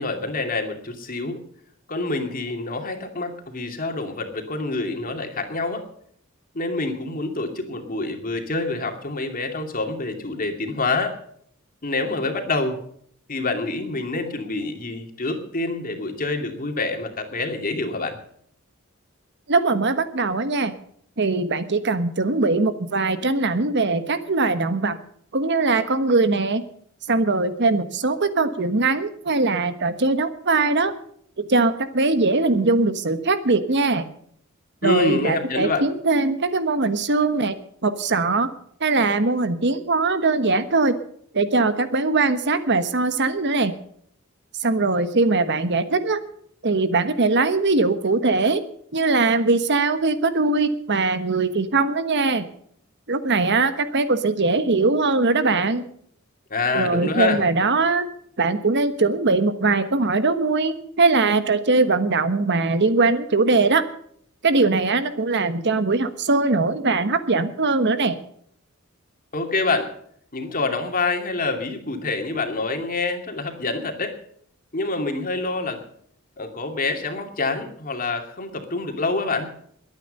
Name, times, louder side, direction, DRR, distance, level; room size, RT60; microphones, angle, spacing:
voice 1, 0.0-1.4 1.9-5.9 6.5-11.2 11.8-12.8 13.3-18.2 34.8-35.8 56.5-57.4 69.3-69.9 70.3-74.2 74.7-75.8 76.4-79.5, left 3 dB, 45° left, 5 dB, 2.6 m, -26 dB
voice 2, 19.5-20.7 21.2-25.0 25.3-26.6 27.1-30.9 31.4-34.0 34.8-37.5 37.8-38.5 38.8-41.0 41.3-43.7 44.6-46.2 46.6-48.6 48.9-52.4 53.1-55.8 56.7-58.1 58.4-63.8 64.4-68.2, right 3 dB, 55° right, 11 dB, 1.3 m, -21 dB
21.5 x 9.2 x 5.3 m, 0.64 s
head